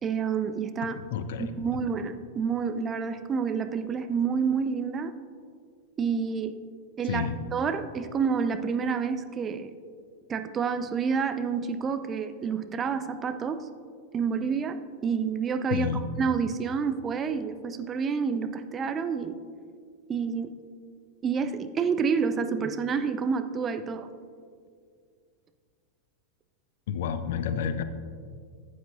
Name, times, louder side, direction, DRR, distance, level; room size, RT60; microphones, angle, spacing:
voice 1, 0.0-1.0 1.4-5.1 6.0-6.5 7.0-9.7 10.3-13.7 14.1-19.4 20.1-20.6 21.2-24.1, right 6 dB, 25° right, 9 dB, 0.5 m, -29 dB
voice 2, 0.8-1.5 7.1-7.4 15.7-16.1 26.9-27.8, left 7 dB, 55° left, 11 dB, 0.5 m, -30 dB
14.5 x 8.7 x 2.6 m, 2.1 s
figure-of-eight pair, 90°, 0 cm